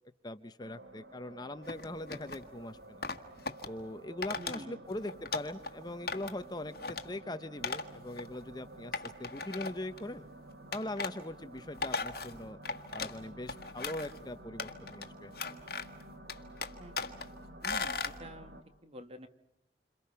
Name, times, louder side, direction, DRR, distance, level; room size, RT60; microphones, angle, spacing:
voice 1, 0.2-3.0 3.6-10.2 10.7-12.6 12.9-15.3, left 1 dB, 25° left, 10 dB, 0.9 m, -41 dB
sound 1, 0.6-18.6, right 1 dB, 90° right, 2.9 m, -52 dB
sound 2, 1.7-2.4 3.0-3.7 4.2-4.6 4.9-5.7 6.1-6.4 6.7-7.0 7.6-7.9 8.2-8.3 8.9-10.0 10.7-11.1 11.6-13.2 13.5-14.2 14.6-15.1 15.3-16.0 16.3-17.3 17.6-18.2, left 4 dB, 60° left, 1.6 m, -37 dB
voice 2, 4.4-4.8 16.8-17.0 17.6-18.6 18.8-19.3, right 1 dB, 35° right, 8 dB, 2.0 m, -47 dB
28.5 x 27.0 x 5.7 m, 0.79 s
head